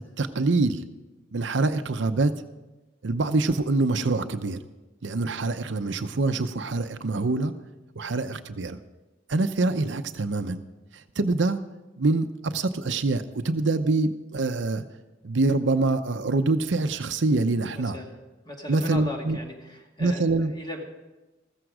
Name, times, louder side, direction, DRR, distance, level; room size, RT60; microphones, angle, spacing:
voice 1, 0.2-0.8 1.3-2.3 3.0-4.6 5.0-7.5 8.0-8.8 9.3-10.6 11.2-11.6 12.0-14.8 15.2-18.0 18.7-19.4 20.0-20.5, right 3 dB, 70° right, 9 dB, 0.7 m, -25 dB
voice 2, 17.7-18.2 18.5-20.8, left 1 dB, 25° left, 1 dB, 2.3 m, -38 dB
15.0 x 14.0 x 4.9 m, 1.1 s
head